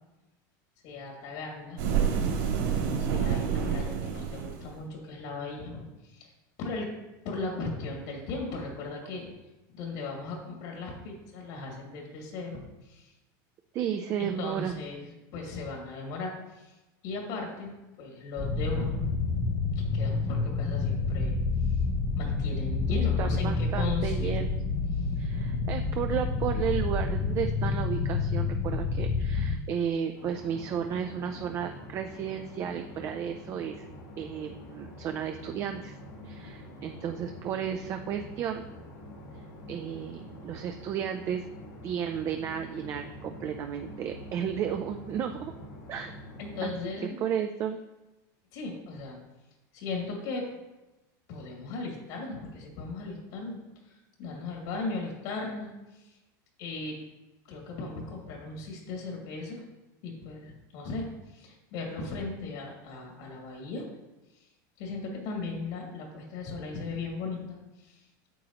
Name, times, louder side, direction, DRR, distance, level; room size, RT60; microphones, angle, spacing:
voice 1, 0.8-1.8 3.0-6.3 6.6-6.9 7.2-9.3 9.7-13.1 14.2-16.8 17.0-19.0 19.9-21.4 22.1-24.3 46.4-47.2 48.5-49.2 49.7-50.5 51.3-53.6 53.8-55.7 56.0-56.2 56.6-57.0 57.5-59.6 60.0-63.9 64.8-68.0, left 3 dB, 60° left, -1 dB, 2.4 m, -37 dB
sound 1, 1.8-4.8, right 7 dB, 70° right, 2.6 m, -28 dB
voice 2, 13.7-14.8 22.9-24.5 25.2-33.9 34.2-36.0 36.2-38.6 39.7-41.4 41.8-45.5 45.9-46.2 46.6-46.7 47.2-47.8, right 8 dB, 30° right, 5 dB, 0.4 m, -33 dB
sound 2, 18.4-29.6, left 4 dB, 20° left, 0.6 m, -28 dB
sound 3, 30.2-46.8, left 1 dB, 90° left, 2.9 m, -45 dB
9.0 x 7.4 x 2.9 m, 1.0 s
supercardioid pair, 160°, 10 cm